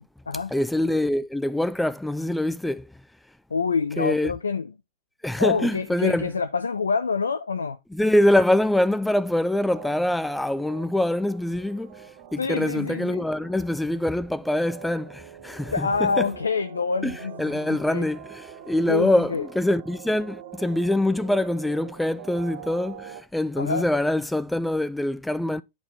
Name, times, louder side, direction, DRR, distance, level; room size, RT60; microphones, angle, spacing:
voice 1, 0.5-2.8 4.0-4.3 5.2-6.3 7.9-11.9 12.3-16.2 17.0-25.6, left 1 dB, 5° left, 0.4 m, -24 dB
voice 2, 3.5-4.7 5.4-7.8 12.4-13.3 15.7-18.1 18.9-19.5 23.6-23.9, left 5 dB, 75° left, 0.4 m, -26 dB
sound 1, 8.3-23.2, right 9 dB, 50° right, 0.9 m, -44 dB
8.7 x 3.7 x 4.2 m
figure-of-eight pair, 90°, 0 cm